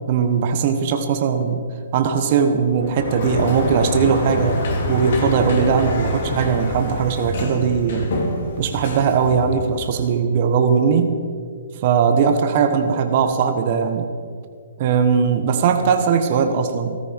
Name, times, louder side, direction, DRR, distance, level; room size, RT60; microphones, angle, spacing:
voice 1, 0.1-1.6 1.9-4.6 4.9-8.1 8.6-11.2 11.8-14.1 14.8-17.0, right 6 dB, 45° right, 6 dB, 1.2 m, -19 dB
Sliding door, 2.8-9.9, left 1 dB, 60° left, 2.9 m, -26 dB
14.0 x 13.5 x 5.2 m, 2.1 s
hypercardioid pair, 145°, 0 cm